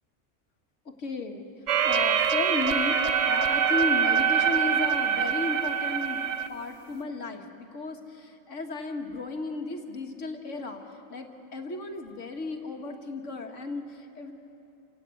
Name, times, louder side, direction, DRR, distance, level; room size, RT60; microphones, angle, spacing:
voice 1, 0.9-14.3, left 3 dB, 85° left, 4 dB, 2.0 m, -34 dB
sound 1, 1.7-6.5, right 7 dB, 80° right, 1.1 m, -24 dB
28.0 x 17.5 x 8.3 m, 2.9 s
omnidirectional pair, 1.2 m